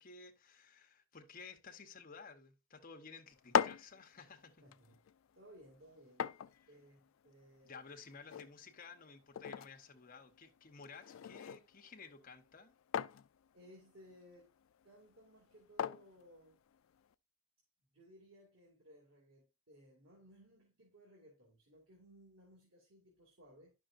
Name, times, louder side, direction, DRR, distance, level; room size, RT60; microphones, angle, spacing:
voice 1, 0.0-4.6 7.6-12.7, left 5 dB, 45° left, 1.0 m, -54 dB
sound 1, 3.3-17.1, left 7 dB, 80° left, 0.3 m, -43 dB
voice 2, 4.6-5.0 5.3-6.3 6.7-7.7 13.5-14.5 14.8-16.6 17.9-23.7, equal, 90° right, 2.3 m, -61 dB
10.0 x 6.2 x 2.5 m
head